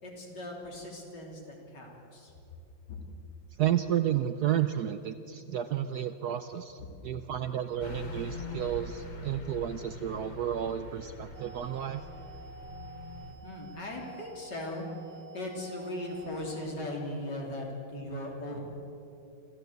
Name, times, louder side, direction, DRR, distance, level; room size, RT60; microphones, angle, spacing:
voice 1, 0.0-2.3 2.9-3.0 6.8-6.9 13.4-18.6, left 1 dB, 60° left, -1 dB, 3.9 m, -39 dB
voice 2, 3.6-12.0, right 10 dB, 70° right, 10 dB, 1.0 m, -31 dB
Car passing by / Truck, 7.8-13.3, left 3 dB, 75° left, 3.3 m, -43 dB
sound 1, 11.3-16.7, right 6 dB, 90° right, 2.6 m, -49 dB
26.5 x 14.5 x 8.0 m, 3.0 s
omnidirectional pair, 2.2 m